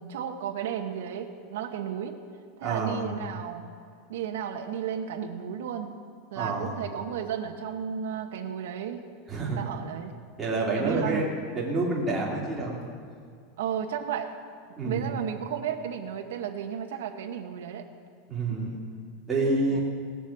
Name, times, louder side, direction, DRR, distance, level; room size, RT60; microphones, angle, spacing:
voice 1, 0.0-2.2 2.6-3.7 4.1-5.9 6.3-9.0 9.6-10.1 10.7-11.3 13.6-14.3 14.8-17.9 19.7-19.8, right 8 dB, 85° right, 4 dB, 1.0 m, -33 dB
voice 2, 2.6-3.0 6.3-6.7 9.3-9.6 10.4-12.8 14.8-15.1 18.3-18.8 19.3-19.8, right 2 dB, 10° right, -5 dB, 2.8 m, -28 dB
18.0 x 7.3 x 7.3 m, 2.2 s
supercardioid pair, 165°, 0 cm